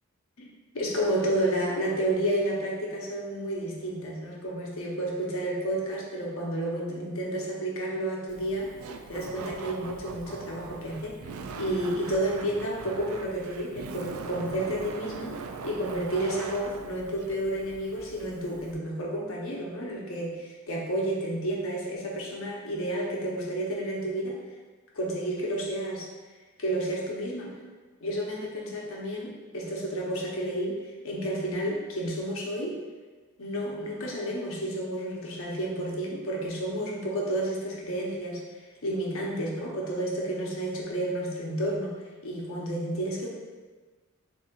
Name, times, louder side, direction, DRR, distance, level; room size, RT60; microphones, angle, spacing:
voice 1, 0.4-8.7 9.1-15.4 15.6-24.4 24.9-26.1 26.6-27.6 28.0-32.8 33.4-38.4 38.8-41.9 42.2-43.4, right 1 dB, 70° left, -2 dB, 0.9 m, -31 dB
Laughter, 8.3-18.8, right 4 dB, 80° right, 0.4 m, -41 dB
6.6 x 2.8 x 2.4 m, 1.3 s
head